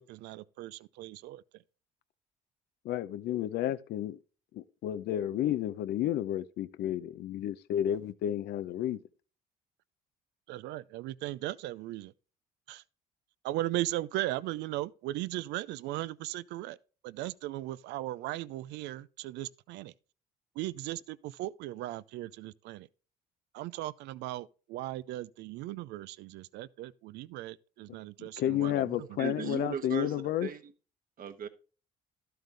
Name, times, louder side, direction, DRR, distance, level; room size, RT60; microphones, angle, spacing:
voice 1, 0.0-1.6 10.5-12.1 12.7-12.8 13.4-16.8 17.0-19.9 20.5-22.9 23.5-29.2, right 16 dB, 80° right, 0.5 m, -37 dB
voice 2, 2.8-4.2 4.5-9.0 28.2-30.5, left 11 dB, 70° left, 0.7 m, -31 dB
voice 3, 29.2-30.6 31.2-31.5, right 8 dB, 55° right, 1.3 m, -37 dB
12.5 x 7.9 x 3.4 m
supercardioid pair, 70°, 17 cm